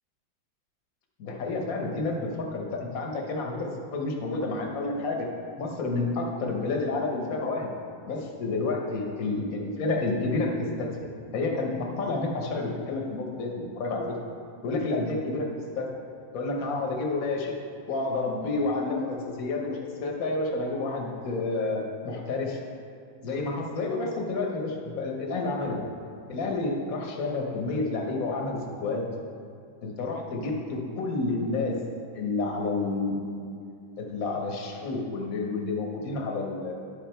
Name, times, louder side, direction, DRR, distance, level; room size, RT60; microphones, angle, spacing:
voice 1, 1.2-5.3 5.6-7.7 8.1-10.9 11.3-14.2 14.6-15.5 15.7-15.9 16.3-17.5 17.9-22.6 23.2-25.8 26.3-29.1 29.8-31.8 32.1-33.5 34.0-36.7, left 3 dB, 50° left, 0 dB, 1.4 m, -30 dB
9.7 x 6.1 x 4.5 m, 2.4 s
omnidirectional pair, 2.2 m